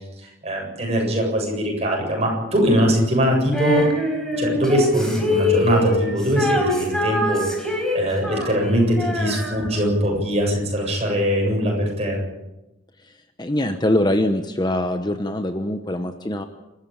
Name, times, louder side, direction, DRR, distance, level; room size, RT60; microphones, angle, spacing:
voice 1, 0.4-3.8 4.3-12.2, equal, 30° right, 0 dB, 7.7 m, -21 dB
Female singing, 3.5-10.0, left 1 dB, 5° left, 4.6 m, -24 dB
voice 2, 13.4-16.4, left 1 dB, 20° left, 7 dB, 1.0 m, -23 dB
28.5 x 13.5 x 8.9 m, 0.97 s
head